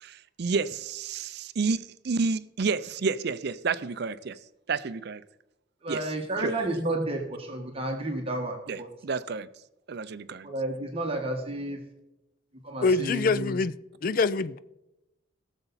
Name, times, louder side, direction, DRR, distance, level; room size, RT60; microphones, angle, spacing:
voice 1, 0.0-4.4 4.7-5.2 5.9-6.1 6.4-6.5 8.7-9.5 9.9-10.5, right 4 dB, 55° right, 0.5 m, -30 dB
voice 2, 5.8-8.9 10.4-11.8 12.6-13.6, right 1 dB, 30° right, 1.4 m, -31 dB
voice 3, 12.8-13.7 14.0-14.6, left 4 dB, 45° left, 0.4 m, -25 dB
18.0 x 6.9 x 4.1 m
head